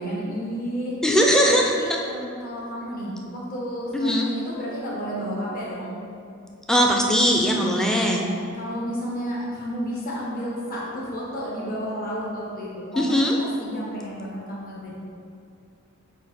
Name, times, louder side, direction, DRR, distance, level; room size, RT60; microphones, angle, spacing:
voice 1, 0.0-1.0 1.4-6.0 8.1-14.9, equal, 40° left, -6 dB, 1.4 m, -32 dB
voice 2, 1.0-1.7 3.9-4.2 6.7-8.2 13.0-13.4, equal, 5° left, -1 dB, 0.4 m, -20 dB
7.7 x 2.9 x 4.2 m, 2.5 s
head